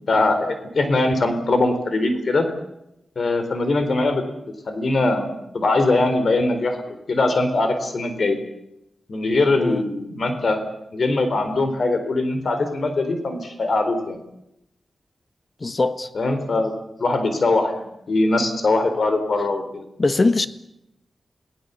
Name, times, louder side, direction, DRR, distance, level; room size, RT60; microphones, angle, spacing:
voice 1, 0.1-2.5 3.2-4.2 4.7-8.4 9.1-10.6 10.9-14.2 16.1-16.7 17.0-19.8, left 2 dB, 65° left, 4.1 m, -21 dB
voice 2, 15.6-16.1 20.0-20.5, left 3 dB, 40° left, 1.4 m, -21 dB
29.0 x 18.0 x 7.1 m
wide cardioid pair, 85°, 0 cm